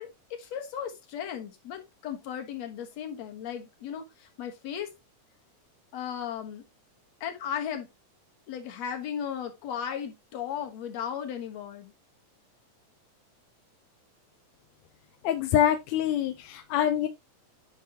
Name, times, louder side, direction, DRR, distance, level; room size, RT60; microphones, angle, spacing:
voice 1, 0.0-4.9 5.9-6.6 7.2-7.9 8.5-11.9, left 8 dB, 60° left, 2.4 m, -36 dB
voice 2, 15.2-17.1, left 11 dB, 75° left, 1.8 m, -25 dB
10.0 x 5.3 x 2.9 m
omnidirectional pair, 3.6 m